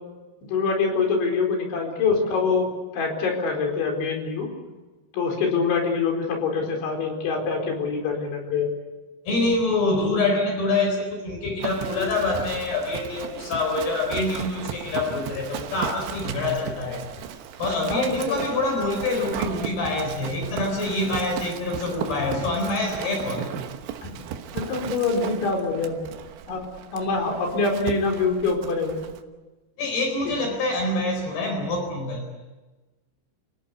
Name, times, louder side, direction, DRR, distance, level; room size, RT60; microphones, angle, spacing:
voice 1, 0.5-2.7 2.9-4.5 5.1-8.7 17.9-18.4 24.0-24.1 24.5-26.0 26.5-29.1 30.3-30.4, left 4 dB, 90° left, 2 dB, 6.9 m, -25 dB
voice 2, 9.3-17.0 17.6-23.5 29.8-32.2, left 2 dB, 60° left, 3 dB, 6.2 m, -26 dB
Livestock farm animals working animals, 11.6-29.2, right 9 dB, 85° right, 3.7 m, -36 dB
29.5 x 17.0 x 8.4 m, 1.2 s
omnidirectional pair, 5.2 m